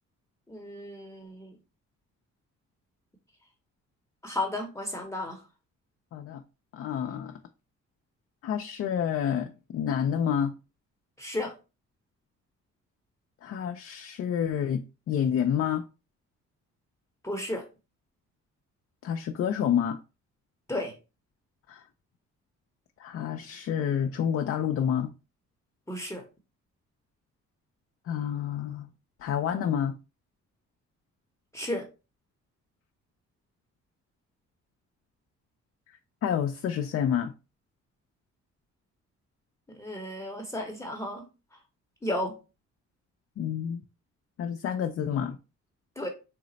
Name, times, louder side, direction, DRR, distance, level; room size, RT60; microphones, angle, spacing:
voice 1, 0.5-1.6 4.2-5.4 11.2-11.5 17.2-17.6 20.7-20.9 25.9-26.2 31.5-31.8 39.7-41.3 42.0-42.4 46.0-46.1, left 1 dB, 10° left, 0.8 m, -33 dB
voice 2, 6.1-6.4 6.7-7.3 8.4-10.5 13.4-15.8 19.0-20.0 21.7-21.8 23.0-25.1 28.1-28.9 29.2-30.0 36.2-37.3 43.4-43.8 44.4-45.4, left 8 dB, 50° left, 0.4 m, -28 dB
4.1 x 2.0 x 3.9 m
cardioid pair, 90°, 30 cm